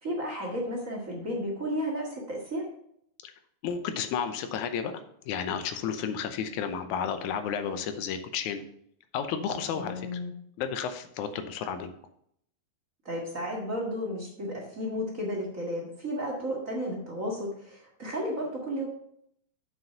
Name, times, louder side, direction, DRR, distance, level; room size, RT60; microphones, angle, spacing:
voice 1, 0.0-2.6 9.7-10.3 13.0-18.9, equal, 35° right, -2 dB, 1.7 m, -33 dB
voice 2, 3.6-4.9 5.2-8.6 9.1-10.2 10.6-11.9, left 7 dB, 90° left, 9 dB, 2.2 m, -32 dB
7.5 x 6.3 x 5.7 m, 0.70 s
omnidirectional pair, 3.4 m